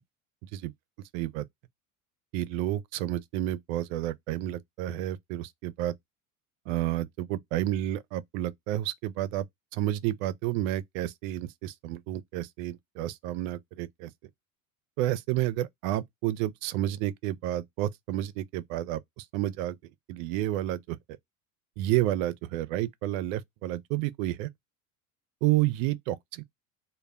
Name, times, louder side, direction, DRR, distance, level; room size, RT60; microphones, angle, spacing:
voice 1, 0.4-0.7 1.1-1.5 2.3-6.0 6.7-9.5 9.7-14.1 15.0-19.8 20.1-21.0 21.8-24.5 25.4-26.4, right 14 dB, 70° right, 0.5 m, -30 dB
2.2 x 2.0 x 3.3 m
hypercardioid pair, 85°, 42 cm